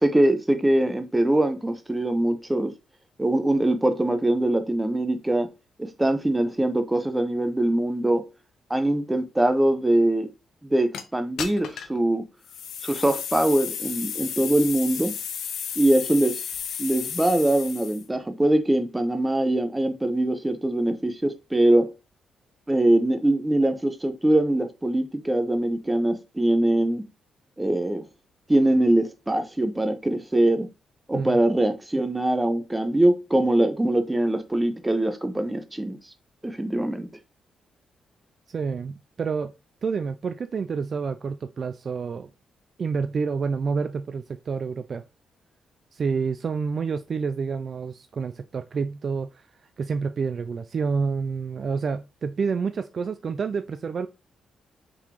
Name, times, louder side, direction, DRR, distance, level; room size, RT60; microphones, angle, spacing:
voice 1, 0.0-2.7 3.2-5.5 5.8-8.2 8.7-10.3 10.6-12.2 12.8-15.1 15.8-16.4 16.8-21.9 22.7-27.0 27.6-28.0 28.5-30.7 31.1-36.0 36.4-37.1, right 1 dB, 10° right, 0.8 m, -22 dB
sound 1, 10.9-11.0 11.4-12.0 12.5-18.1, left 8 dB, 80° left, 0.6 m, -33 dB
voice 2, 38.5-39.5 39.8-42.3 42.8-45.0 45.9-49.4 49.8-54.1, right 5 dB, 45° right, 0.3 m, -28 dB
3.8 x 3.6 x 2.9 m
cardioid pair, 95°, 0 cm